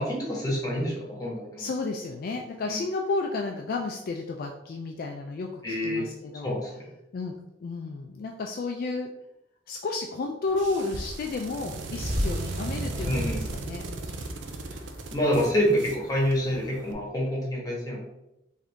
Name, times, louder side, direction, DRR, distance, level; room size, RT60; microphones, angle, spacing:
voice 1, 0.0-1.7 2.6-2.8 5.6-6.1 6.4-6.8 13.0-13.4 15.1-18.0, equal, 20° left, -3 dB, 1.3 m, -27 dB
voice 2, 1.6-6.5 7.1-9.1 9.7-13.8, left 3 dB, 55° left, 2 dB, 0.3 m, -32 dB
sound 1, 10.5-16.9, right 2 dB, 85° right, 0.5 m, -37 dB
sound 2, 11.9-16.3, equal, 40° right, 1.4 m, -35 dB
3.6 x 2.7 x 3.4 m, 0.87 s
head